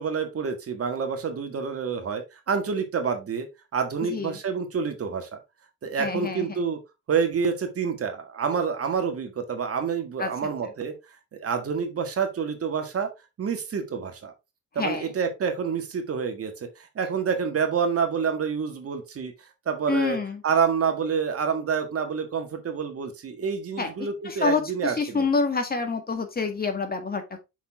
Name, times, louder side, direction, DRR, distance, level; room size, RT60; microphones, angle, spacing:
voice 1, 0.0-3.5 3.7-5.4 5.8-6.8 7.1-10.9 11.3-13.1 13.4-14.3 14.8-19.3 19.7-20.2 20.4-25.3, right 6 dB, 50° right, 1.8 m, -28 dB
voice 2, 6.0-6.6 10.2-10.3 14.8-15.1 19.9-20.4 23.8-23.9 24.2-27.4, left 4 dB, 30° left, 1.8 m, -27 dB
6.1 x 5.6 x 3.6 m
cardioid pair, 90°, 30 cm